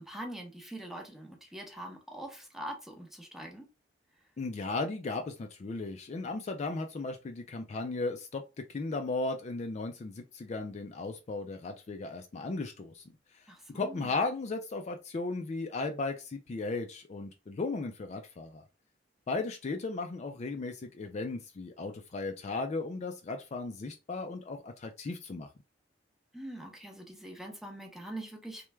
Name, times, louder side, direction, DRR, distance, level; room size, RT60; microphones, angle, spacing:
voice 1, 0.0-3.7 13.5-14.2 26.3-28.7, right 1 dB, ahead, 0.7 m, -43 dB
voice 2, 4.4-13.0 13.3-13.5 13.7-18.6 19.3-25.5, left 3 dB, 40° left, 0.4 m, -36 dB
3.1 x 2.2 x 3.3 m
head